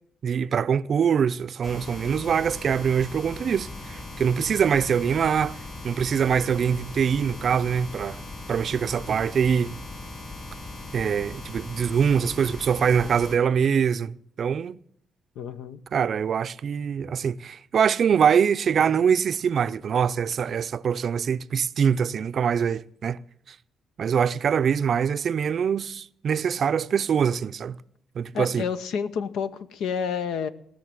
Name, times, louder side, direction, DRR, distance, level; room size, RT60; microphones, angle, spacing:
voice 1, 0.2-5.6 5.8-8.2 8.5-9.8 10.9-14.8 15.9-23.2 23.5-23.6 24.0-27.8 28.2-28.6, right 7 dB, 55° right, 0.5 m, -24 dB
sound 1, 1.6-13.4, left 2 dB, 40° left, 6.2 m, -39 dB
voice 2, 15.4-15.8 28.3-30.5, left 6 dB, 80° left, 0.9 m, -29 dB
18.0 x 6.5 x 9.0 m
cardioid pair, 90°, 0 cm